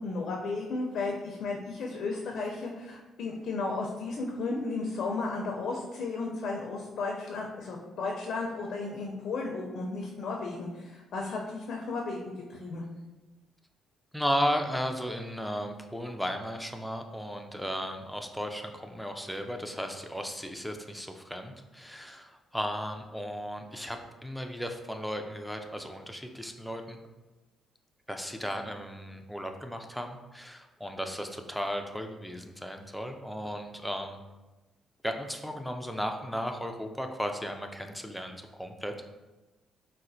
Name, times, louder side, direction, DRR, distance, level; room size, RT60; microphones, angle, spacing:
voice 1, 0.0-12.8, left 3 dB, 70° left, -1 dB, 0.4 m, -34 dB
voice 2, 14.1-27.0 28.1-34.2 35.0-38.9, equal, ahead, 4 dB, 0.3 m, -35 dB
4.0 x 2.1 x 2.6 m, 1.1 s
cardioid pair, 90°, 0 cm